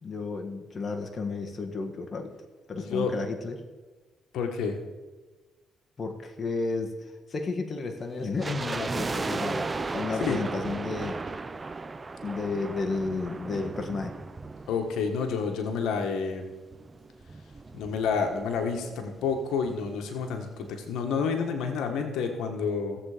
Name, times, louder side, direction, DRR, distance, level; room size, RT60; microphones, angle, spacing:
voice 1, 0.0-2.3 2.7-3.6 6.0-7.0 7.3-11.2 12.2-14.1, left 3 dB, 35° left, 4 dB, 1.6 m, -32 dB
voice 2, 2.8-3.1 4.3-4.8 10.2-10.4 14.7-16.5 17.7-23.0, left 5 dB, 85° left, 4 dB, 1.4 m, -29 dB
sound 1, 8.4-15.7 15.9-16.0 16.7-18.5 18.8-18.9 19.1-19.4 19.9-20.0, right 3 dB, 25° right, 0.6 m, -35 dB
16.5 x 7.7 x 5.0 m, 1.2 s
cardioid pair, 90°, 0 cm